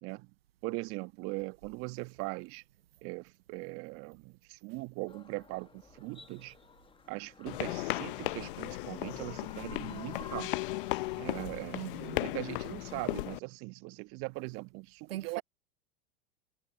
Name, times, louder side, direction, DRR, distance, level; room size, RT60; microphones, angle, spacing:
voice 1, 0.6-2.6 3.0-6.5 7.1-10.6 11.2-11.8 12.2-15.4, right 26 dB, 45° right, 1.4 m, -40 dB
sound 1, 5.1-11.5, left 6 dB, 15° left, 1.3 m, -52 dB
sound 2, 7.5-13.4, left 19 dB, 60° left, 0.8 m, -36 dB
voice 2, 11.7-12.3 15.1-15.4, right 13 dB, 80° right, 0.6 m, -40 dB
hypercardioid pair, 95°, 30 cm